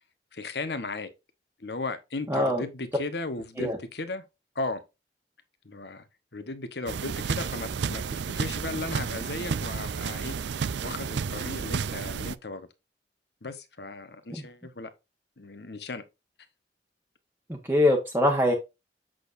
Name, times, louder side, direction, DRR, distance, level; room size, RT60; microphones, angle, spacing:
voice 1, 0.3-1.1 1.6-4.2 4.5-4.8 5.6-6.1 6.3-10.4 10.8-12.7 13.4-14.9 15.4-16.0, left 3 dB, 65° left, 1.1 m, -36 dB
voice 2, 2.3-2.6 3.6-3.8 17.5-18.5, left 1 dB, 10° right, 1.1 m, -23 dB
sound 1, 6.9-12.4, right 6 dB, 80° right, 0.4 m, -31 dB
7.6 x 6.6 x 2.6 m
head